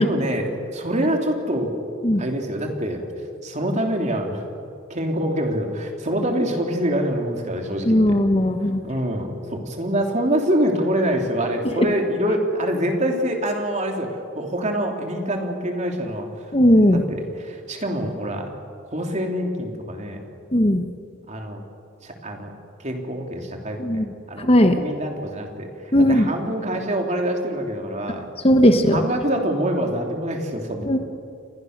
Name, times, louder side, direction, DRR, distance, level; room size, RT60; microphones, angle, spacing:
voice 1, 0.0-1.7 2.2-3.0 3.4-4.4 4.9-8.2 8.8-16.5 16.9-18.5 18.9-20.2 21.3-21.6 22.0-22.5 22.8-28.3 28.9-30.9, equal, 35° right, 2 dB, 3.2 m, -25 dB
voice 2, 7.8-8.8 16.5-17.0 20.5-20.9 23.8-24.1 24.4-24.8 25.9-26.3 28.4-29.0 30.8-31.0, equal, 30° left, 7 dB, 1.2 m, -17 dB
29.0 x 22.5 x 6.7 m, 2.4 s
head